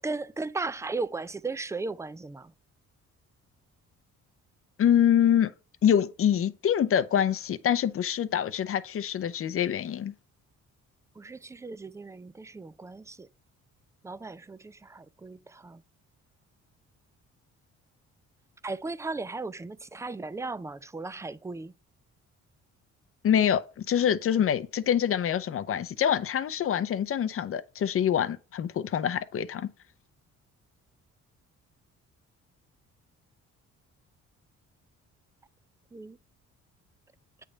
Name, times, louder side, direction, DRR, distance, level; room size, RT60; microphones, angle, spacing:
voice 1, 0.0-2.5 11.2-13.3 14.0-15.8 18.6-21.7 35.9-36.2, right 3 dB, 10° right, 0.4 m, -36 dB
voice 2, 4.8-5.5 5.8-10.1 23.2-29.7, left 9 dB, 45° left, 0.6 m, -25 dB
8.4 x 3.4 x 5.0 m
cardioid pair, 90°, 30 cm